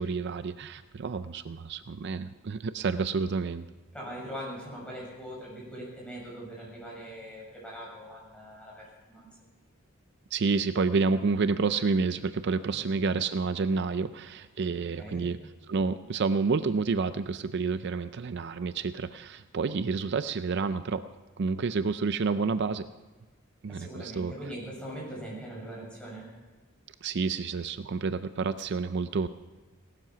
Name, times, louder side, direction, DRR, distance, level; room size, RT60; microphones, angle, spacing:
voice 1, 0.0-3.6 10.3-15.4 15.7-21.0 21.4-22.9 23.6-24.3 27.0-29.3, right 4 dB, 55° right, 12 dB, 0.5 m, -29 dB
voice 2, 3.9-9.2 12.7-12.8 14.7-15.3 23.7-26.3, right 1 dB, 5° left, -4 dB, 6.9 m, -41 dB
17.5 x 12.5 x 5.8 m, 1.2 s
head